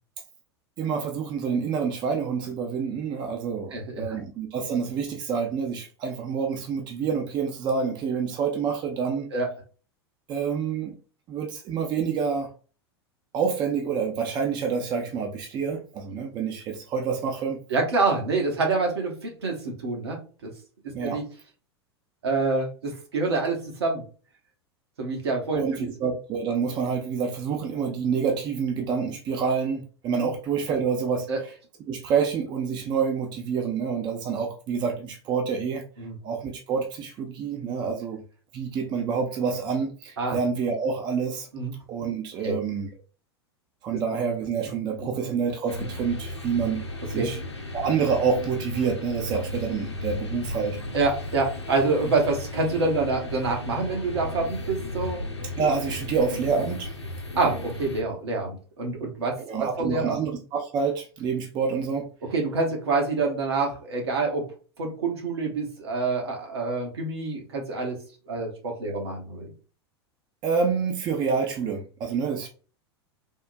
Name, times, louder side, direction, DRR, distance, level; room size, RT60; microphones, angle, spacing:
voice 1, 0.8-9.3 10.3-10.9 11.3-12.5 13.3-17.6 20.9-21.2 25.5-31.5 31.9-35.8 36.2-38.2 38.5-41.5 41.9-42.9 43.8-47.4 47.7-50.8 55.6-56.9 59.5-62.1 70.4-72.5, right 6 dB, 30° right, 2 dB, 0.5 m, -27 dB
voice 2, 3.7-4.2 9.3-9.5 17.7-20.5 20.8-21.2 22.2-24.0 25.0-25.9 30.2-30.3 31.3-31.4 36.0-36.2 40.2-40.4 41.5-41.7 42.4-42.6 45.0-45.1 47.1-47.3 50.9-55.2 57.3-60.2 62.3-64.4 64.8-68.0 68.3-69.5, right 3 dB, 70° right, 1 dB, 1.0 m, -27 dB
sound 1, 45.7-58.0, left 1 dB, 85° left, 0.6 m, -35 dB
3.6 x 2.1 x 2.5 m, 0.38 s
figure-of-eight pair, 90°, 14 cm